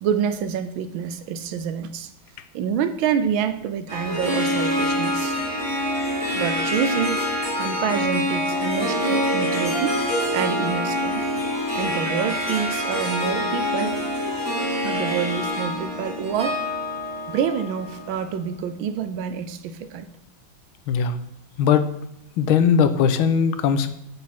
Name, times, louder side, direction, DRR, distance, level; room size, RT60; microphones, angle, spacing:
voice 1, 0.0-2.1 2.5-5.4 6.3-7.3 7.6-10.0 10.3-11.2 11.7-14.0 14.8-16.6 17.3-20.1, right 8 dB, 75° right, 11 dB, 1.4 m, -27 dB
Harp, 3.9-18.4, equal, 5° right, 2.4 m, -25 dB
voice 2, 20.9-21.2 21.6-21.9 22.4-23.9, left 7 dB, 80° left, 10 dB, 1.5 m, -19 dB
8.2 x 6.7 x 4.4 m, 0.78 s
omnidirectional pair, 2.3 m